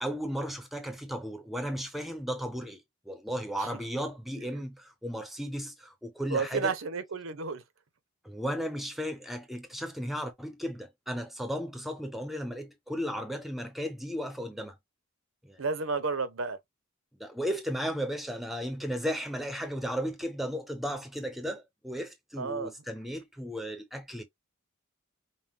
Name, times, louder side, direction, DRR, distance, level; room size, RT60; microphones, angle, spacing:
voice 1, 0.0-2.8 3.1-6.7 8.2-14.8 15.4-15.6 17.2-24.2, equal, ahead, 0.6 m, -35 dB
voice 2, 6.3-7.6 15.6-16.6 22.4-22.7, right 4 dB, 65° right, 0.7 m, -31 dB
5.4 x 2.2 x 3.0 m
head